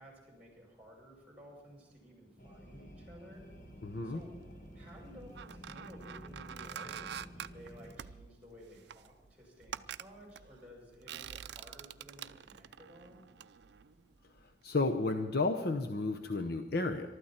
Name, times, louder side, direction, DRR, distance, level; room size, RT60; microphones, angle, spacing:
voice 1, 0.0-3.4 4.0-4.3 4.7-13.2, equal, 10° right, -1 dB, 6.6 m, -55 dB
sound 1, 2.4-7.9, equal, 45° left, 1.8 m, -51 dB
voice 2, 3.8-4.2 14.4-17.1, left 3 dB, 60° left, 5 dB, 0.9 m, -32 dB
sound 2, 3.8-4.4 5.0-14.5 14.8-15.0, right 8 dB, 65° right, 0.5 m, -47 dB
23.0 x 13.0 x 4.4 m, 1.2 s
head